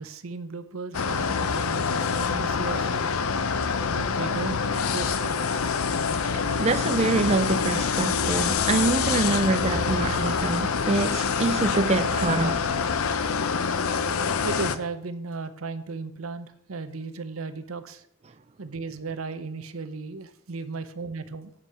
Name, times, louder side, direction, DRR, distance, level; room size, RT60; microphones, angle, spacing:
voice 1, 0.0-3.2 3.9-4.6 4.9-5.4 14.4-18.0 18.6-21.5, right 4 dB, 75° right, 0.8 m, -35 dB
sound 1, 0.9-14.8, left 5 dB, 85° left, 0.7 m, -26 dB
voice 2, 6.2-12.7, right 3 dB, 30° right, 0.5 m, -25 dB
8.4 x 8.2 x 4.9 m
head